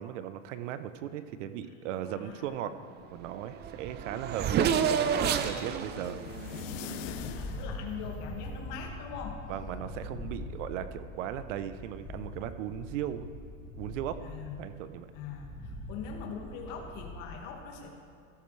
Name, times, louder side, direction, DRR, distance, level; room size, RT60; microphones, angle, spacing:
voice 1, 0.0-2.7 3.1-6.6 9.5-13.3 13.7-14.2 14.6-15.1, right 10 dB, 80° right, 11 dB, 0.9 m, -37 dB
voice 2, 1.9-2.6 7.3-9.4 14.2-14.6 15.1-18.0, left 6 dB, 50° left, 1 dB, 2.0 m, -42 dB
Race car auto racing / Accelerating revving vroom, 3.3-3.4 3.6-7.6, right 7 dB, 30° right, 0.6 m, -30 dB
sound 1, 3.7-8.7, left 10 dB, 80° left, 0.8 m, -44 dB
sound 2, 7.1-17.3, left 1 dB, 5° left, 2.2 m, -43 dB
16.0 x 13.5 x 3.3 m, 2.4 s
supercardioid pair, 140°, 36 cm